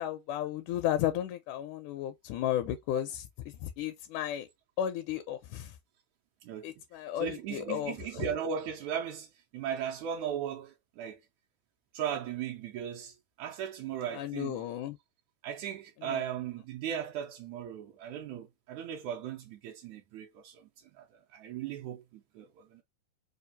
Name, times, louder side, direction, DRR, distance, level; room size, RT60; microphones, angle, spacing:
voice 1, 0.0-3.3 3.6-4.5 4.8-5.7 6.6-8.3 14.1-15.0 16.0-16.2, left 11 dB, 80° left, 2.0 m, -34 dB
voice 2, 6.4-6.7 7.2-11.2 11.9-14.7 15.4-22.8, right 8 dB, 80° right, 1.8 m, -37 dB
5.1 x 2.3 x 2.6 m
omnidirectional pair, 3.6 m